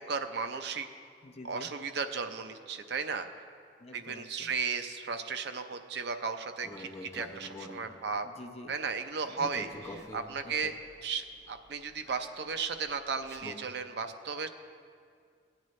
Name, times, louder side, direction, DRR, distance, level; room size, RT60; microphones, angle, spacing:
voice 1, 0.1-0.9 1.4-3.3 3.9-8.3 8.7-9.7 10.1-10.7 11.0-14.5, right 5 dB, 65° right, 8 dB, 0.6 m, -35 dB
voice 2, 1.2-1.7 3.8-4.5 7.9-8.0 8.2-8.7 9.2-10.0 10.4-10.8, left 2 dB, 35° left, 6 dB, 0.6 m, -48 dB
sound 1, 6.6-7.9 9.4-13.6, left 1 dB, 15° left, 0.9 m, -47 dB
17.5 x 9.0 x 3.2 m, 2.2 s
head